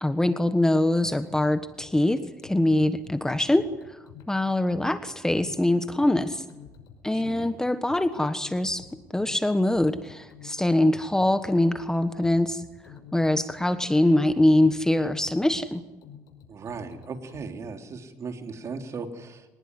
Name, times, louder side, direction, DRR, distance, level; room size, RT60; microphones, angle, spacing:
voice 1, 0.0-4.0 4.3-6.4 7.0-8.9 9.1-12.6 13.1-15.8, left 1 dB, 10° left, 10 dB, 1.4 m, -23 dB
sound 1, 1.0-17.5, left 8 dB, 80° left, 5.6 m, -50 dB
voice 2, 7.1-7.5 16.5-19.5, right 4 dB, 45° right, 5 dB, 3.5 m, -37 dB
24.5 x 19.5 x 9.9 m, 1.1 s
cardioid pair, 100°, 7 cm